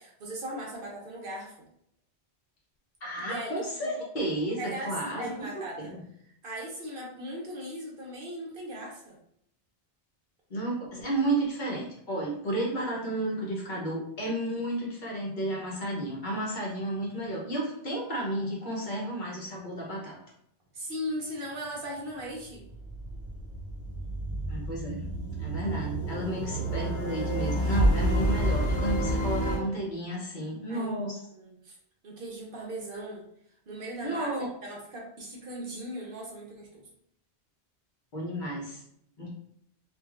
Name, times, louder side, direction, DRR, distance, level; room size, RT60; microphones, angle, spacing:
voice 1, 0.0-1.5 3.2-3.5 3.8-3.9 4.6-5.9 6.4-9.2 20.7-22.6 30.7-31.8 32.0-33.2 33.7-34.3 34.6-36.9, right 1 dB, 60° right, -1 dB, 0.8 m, -38 dB
voice 2, 3.0-6.0 10.5-20.2 24.5-25.0 25.4-31.2 34.0-34.5 38.1-38.8 39.2-39.3, right 1 dB, 50° left, -3 dB, 0.8 m, -32 dB
sound 1, 22.3-29.6, right 1 dB, 85° left, 0.9 m, -29 dB
3.0 x 2.4 x 2.4 m, 0.71 s
omnidirectional pair, 1.1 m